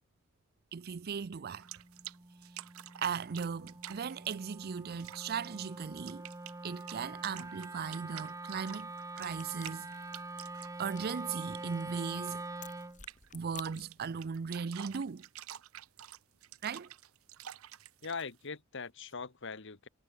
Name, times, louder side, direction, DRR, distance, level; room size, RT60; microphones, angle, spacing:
voice 1, 0.7-1.6 3.0-6.3 6.6-9.9 10.8-12.5 13.3-15.3 16.6-16.9, right 6 dB, 45° right, 0.5 m, -38 dB
Wind instrument woodwind instrument, 1.4-13.0, right 2 dB, 15° right, 0.7 m, -45 dB
sound 1, 1.6-2.2 2.4-4.7 5.0-5.5 5.8-11.7 12.0-12.5 12.8-12.9 13.1-13.3 13.6-18.3, right 11 dB, 80° right, 0.7 m, -48 dB
sound 2, 9.2-14.2, left 8 dB, 35° left, 6.0 m, -55 dB
voice 2, 18.0-19.9, left 5 dB, 60° left, 1.5 m, -41 dB
head